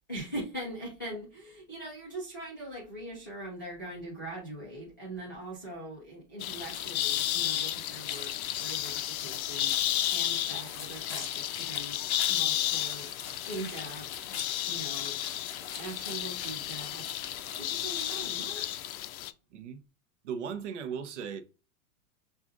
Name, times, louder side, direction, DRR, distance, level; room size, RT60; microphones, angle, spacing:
voice 1, 0.1-12.0 12.3-13.1 13.4-14.4 14.7-15.2 15.7-18.8, right 1 dB, 15° left, 0.3 m, -42 dB
sound 1, 6.4-19.3, left 12 dB, 75° left, 0.5 m, -33 dB
sound 2, 6.7-18.2, left 6 dB, 45° left, 0.8 m, -44 dB
voice 2, 20.2-21.4, right 7 dB, 55° right, 0.6 m, -37 dB
6.0 x 2.4 x 2.4 m
supercardioid pair, 180°, 43 cm